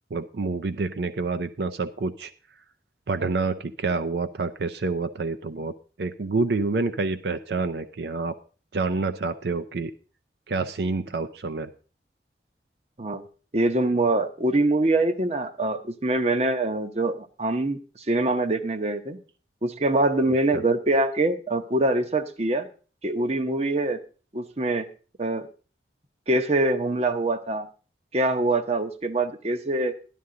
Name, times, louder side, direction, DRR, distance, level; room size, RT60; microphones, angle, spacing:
voice 1, 0.1-2.3 3.1-5.7 6.0-8.4 8.7-9.9 10.5-11.7 20.5-20.6, right 3 dB, 70° right, 11 dB, 0.5 m, -28 dB
voice 2, 13.5-17.8 18.1-19.2 19.6-22.7 23.0-24.0 24.3-24.9 25.2-25.5 26.3-27.7 28.1-29.9, right 2 dB, 35° right, 10 dB, 0.8 m, -24 dB
12.5 x 11.0 x 3.8 m, 0.37 s
head